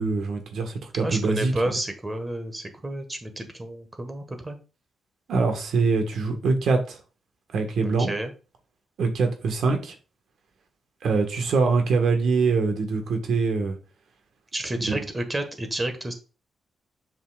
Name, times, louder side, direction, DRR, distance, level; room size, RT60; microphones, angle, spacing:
voice 1, 0.0-1.5 5.3-7.0 7.5-8.1 9.0-9.9 11.0-13.8, right 4 dB, 75° right, 1.4 m, -23 dB
voice 2, 1.0-4.6 7.8-8.3 14.5-16.1, right 1 dB, 20° right, 1.4 m, -30 dB
7.2 x 5.7 x 2.4 m
cardioid pair, 110°, 0 cm